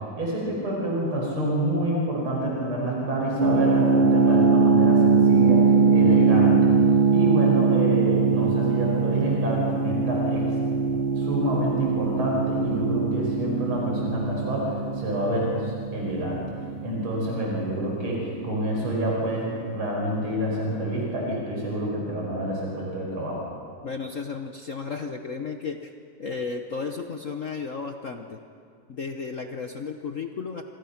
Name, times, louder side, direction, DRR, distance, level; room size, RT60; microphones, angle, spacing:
voice 1, 0.2-6.7 7.1-10.5 11.2-16.4 16.8-23.4, right 1 dB, 75° right, -3 dB, 6.2 m, -27 dB
sound 1, 3.4-18.2, right 5 dB, 45° right, 0.6 m, -22 dB
voice 2, 23.8-25.9 26.2-28.4 28.9-30.6, left 5 dB, 50° left, 5 dB, 1.1 m, -33 dB
28.5 x 26.5 x 6.0 m, 2.3 s
omnidirectional pair, 2.4 m